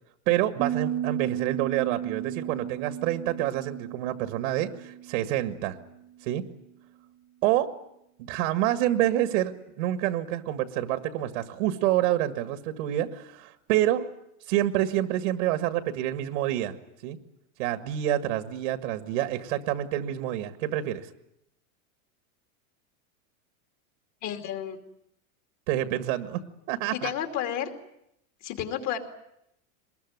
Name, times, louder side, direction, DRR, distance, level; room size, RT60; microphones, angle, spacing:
voice 1, 0.3-5.8 6.2-6.4 7.4-7.7 8.2-14.0 14.5-16.8 17.0-17.2 17.6-21.1 25.7-27.1, right 13 dB, 65° right, 9 dB, 1.8 m, -27 dB
Piano, 0.6-6.2, right 11 dB, 30° right, 1.2 m, -34 dB
voice 2, 24.2-24.8 26.9-27.7 28.4-29.0, left 10 dB, 40° left, 5 dB, 3.0 m, -31 dB
23.5 x 21.0 x 9.4 m, 0.81 s
supercardioid pair, 150°, 43 cm